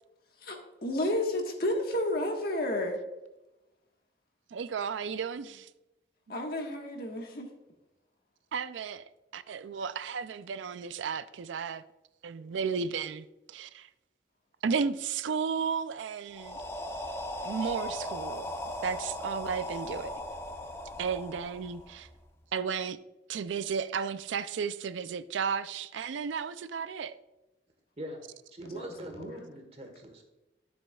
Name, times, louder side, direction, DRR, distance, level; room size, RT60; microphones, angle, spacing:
voice 1, 0.4-3.0 6.3-7.5 28.6-28.9 29.2-29.3, left 1 dB, 55° left, 1.4 m, -31 dB
voice 2, 4.5-5.4 8.5-9.0 9.3-11.8 12.2-13.9 14.6-16.6 17.4-18.5 18.8-20.1 21.0-22.1 22.5-23.0 23.3-27.1, right 6 dB, 85° right, 0.4 m, -33 dB
sound 1, 16.3-22.2, left 1 dB, 15° left, 0.5 m, -38 dB
voice 3, 28.5-30.2, right 1 dB, 35° right, 1.3 m, -41 dB
12.5 x 7.1 x 2.3 m
head